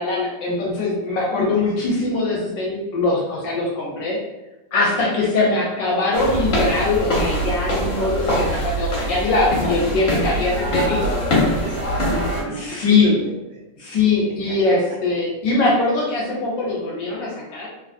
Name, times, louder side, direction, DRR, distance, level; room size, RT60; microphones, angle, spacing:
voice 1, 0.0-4.2 4.7-11.0 12.5-13.1 13.8-17.7, left 3 dB, 70° left, -3 dB, 1.2 m, -21 dB
sound 1, 6.1-12.4, equal, 50° left, 0.9 m, -23 dB
voice 2, 10.4-13.6, right 2 dB, 75° right, -3 dB, 1.1 m, -32 dB
3.3 x 3.1 x 2.5 m, 1.0 s
omnidirectional pair, 2.4 m